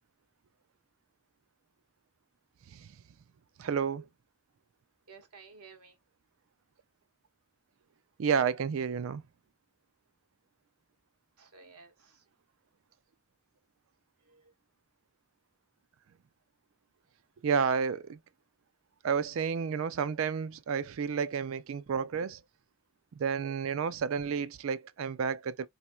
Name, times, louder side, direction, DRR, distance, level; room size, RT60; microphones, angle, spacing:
voice 1, 3.6-4.0 8.2-9.2 17.4-18.2 19.0-22.4 23.1-25.7, right 6 dB, 60° right, 0.3 m, -31 dB
voice 2, 5.1-6.0 11.4-12.2 14.2-14.5, right 5 dB, 85° right, 0.9 m, -54 dB
4.2 x 2.8 x 2.2 m
head